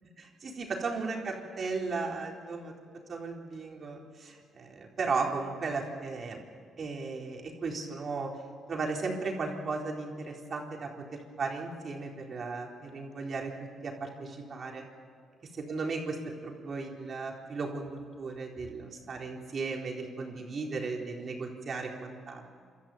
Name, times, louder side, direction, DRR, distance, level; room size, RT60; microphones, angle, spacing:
voice 1, 0.2-2.7 3.1-6.4 6.8-8.3 8.7-10.9 11.4-13.5 13.8-14.9 15.5-16.2 16.4-22.5, right 4 dB, 45° right, 0 dB, 4.1 m, -35 dB
27.5 x 13.5 x 8.9 m, 2.1 s
cardioid pair, 90°, 0 cm